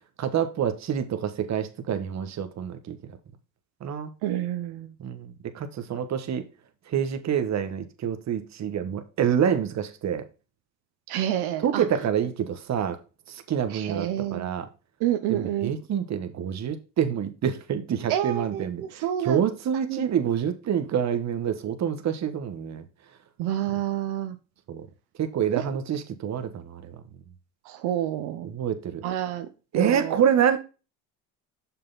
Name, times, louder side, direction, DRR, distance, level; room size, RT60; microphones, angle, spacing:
voice 1, 0.2-3.0 3.8-4.1 5.0-6.5 6.9-10.2 11.6-13.0 13.3-14.6 15.3-22.8 24.7-24.9 25.2-27.0 28.4-29.0 29.7-30.6, right 8 dB, 40° right, 1.4 m, -27 dB
voice 2, 4.2-4.9 11.1-11.8 13.7-14.5 15.0-15.7 18.1-19.4 19.9-20.1 23.4-24.4 25.5-25.6 27.6-28.5 29.0-29.5 29.7-30.2, right 12 dB, 70° right, 1.0 m, -28 dB
6.7 x 5.8 x 3.9 m
supercardioid pair, 100°, 41 cm